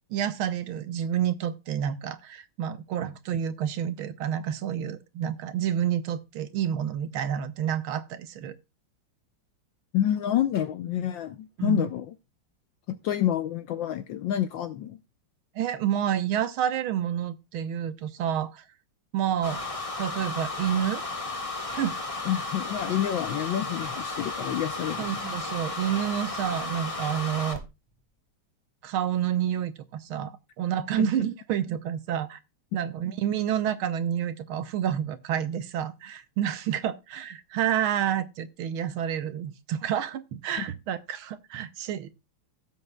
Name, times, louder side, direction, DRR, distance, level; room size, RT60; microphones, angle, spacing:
voice 1, 0.1-8.5 11.6-11.9 15.5-18.6 19.1-19.6 20.0-21.0 21.6-22.0 25.0-27.6 28.8-30.3 30.6-32.4 32.7-42.1, right 10 dB, 75° right, 1.6 m, -29 dB
voice 2, 9.9-12.1 12.9-15.0 22.2-25.3 31.0-31.1, left 11 dB, 70° left, 1.3 m, -28 dB
sound 1, 19.4-27.6, left 3 dB, 15° left, 1.4 m, -34 dB
16.5 x 7.6 x 2.2 m
omnidirectional pair, 2.4 m